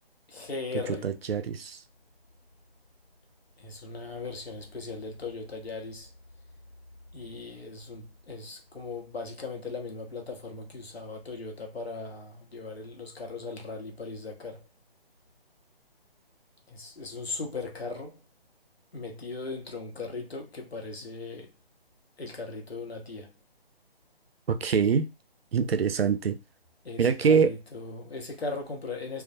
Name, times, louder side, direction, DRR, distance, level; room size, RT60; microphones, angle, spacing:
voice 1, 0.3-1.1 3.6-6.1 7.1-14.7 16.7-18.2 18.9-21.5 22.2-23.3 26.8-29.2, left 3 dB, 80° left, 1.0 m, -38 dB
voice 2, 1.0-1.8 24.5-25.1 25.5-26.4 27.0-27.5, right 6 dB, 75° right, 0.5 m, -24 dB
2.3 x 2.1 x 2.6 m
figure-of-eight pair, 145°, 30 cm